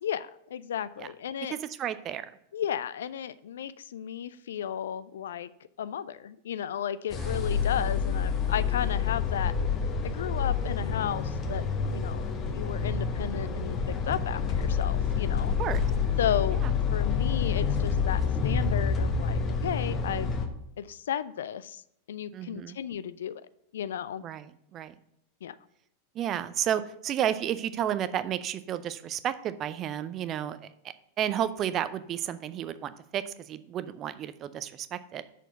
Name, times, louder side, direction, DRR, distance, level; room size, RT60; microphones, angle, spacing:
voice 1, 0.0-1.6 2.5-5.5 5.8-9.5 10.0-15.5 16.2-16.6 16.9-20.3 20.8-21.8 22.1-23.4 23.7-24.2 25.4-25.6, left 9 dB, 60° left, 16 dB, 0.3 m, -34 dB
voice 2, 1.5-2.3 7.1-7.4 15.6-15.8 16.6-16.7 22.3-22.8 24.2-24.9 26.1-30.7 31.2-35.2, right 10 dB, 30° right, 14 dB, 0.4 m, -32 dB
sound 1, 7.1-20.5, left 6 dB, 30° left, 1.0 m, -28 dB
6.2 x 4.5 x 6.6 m, 0.75 s
figure-of-eight pair, 90°, 0 cm